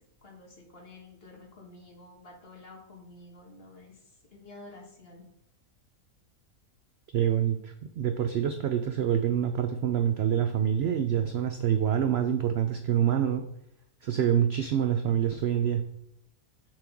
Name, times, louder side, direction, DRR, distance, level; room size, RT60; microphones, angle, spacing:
voice 1, 0.2-4.0 4.3-5.2, left 2 dB, 40° left, -2 dB, 2.0 m, -50 dB
voice 2, 7.1-13.5 14.0-15.9, right 9 dB, 75° right, 8 dB, 0.6 m, -26 dB
7.6 x 6.0 x 3.5 m, 0.78 s
omnidirectional pair, 1.6 m